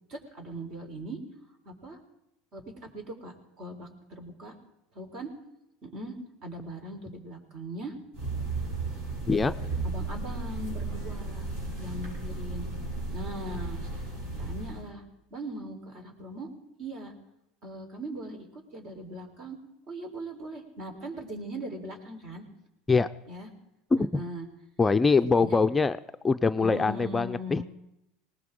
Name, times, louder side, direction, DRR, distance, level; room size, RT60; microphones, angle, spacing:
voice 1, 0.1-1.2 1.6-2.0 2.5-4.5 4.9-5.3 5.8-6.2 6.4-8.0 9.8-11.5 11.8-12.7 13.1-13.8 14.4-15.0 15.3-16.5 16.8-17.1 17.6-19.6 19.9-22.4 23.3-23.5 24.0-24.5 25.2-25.6 26.6-27.6, right 1 dB, 50° right, 3 dB, 4.1 m, -40 dB
sound 1, 8.1-14.9, right 3 dB, 70° right, 7.1 m, -34 dB
voice 2, 23.9-24.2 24.8-26.0 26.2-27.6, left 4 dB, 15° left, 9 dB, 0.5 m, -23 dB
20.0 x 19.0 x 3.8 m, 0.88 s
hypercardioid pair, 95°, 0 cm